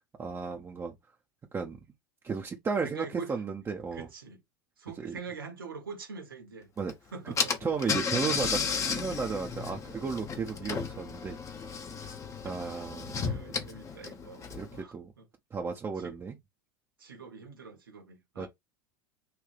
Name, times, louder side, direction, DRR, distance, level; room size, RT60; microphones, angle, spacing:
voice 1, 0.2-0.9 1.5-1.8 2.2-4.1 5.0-5.1 6.8-6.9 7.6-8.6 8.9-11.4 12.4-13.4 14.5-15.1 15.5-16.4 18.4-18.5, right 5 dB, 25° right, 0.9 m, -34 dB
voice 2, 2.8-3.4 3.9-4.4 4.8-6.7 7.1-7.6 12.4-15.3 16.0-16.3 17.0-18.5, right 5 dB, 80° right, 1.7 m, -45 dB
Car / Engine, 6.9-7.0 7.4-14.8, left 5 dB, 25° left, 1.0 m, -34 dB
5.9 x 2.7 x 3.3 m
figure-of-eight pair, 80°, 11 cm